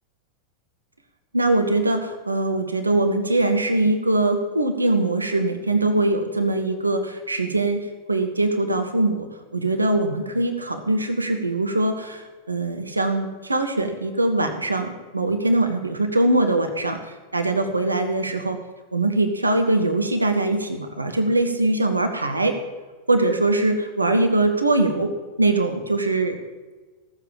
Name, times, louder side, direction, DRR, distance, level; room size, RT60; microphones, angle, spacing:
voice 1, 1.3-9.3 9.5-18.6 18.9-22.6 23.1-26.4, right 2 dB, 80° right, 6 dB, 1.0 m, -22 dB
15.0 x 7.2 x 7.3 m, 1.3 s
figure-of-eight pair, 90°, 0 cm